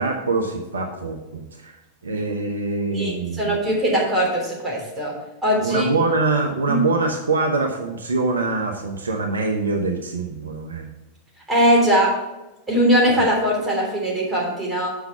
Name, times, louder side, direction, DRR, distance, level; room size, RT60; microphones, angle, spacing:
voice 1, 0.0-1.8 2.0-3.7 5.6-10.9 13.2-13.3, right 3 dB, 70° right, 3 dB, 0.8 m, -24 dB
voice 2, 3.4-5.1 5.4-5.9 6.7-6.8 11.5-12.2 12.7-14.9, equal, 10° right, -4 dB, 3.2 m, -20 dB
8.0 x 5.5 x 5.5 m, 1.0 s
figure-of-eight pair, 90°, 0 cm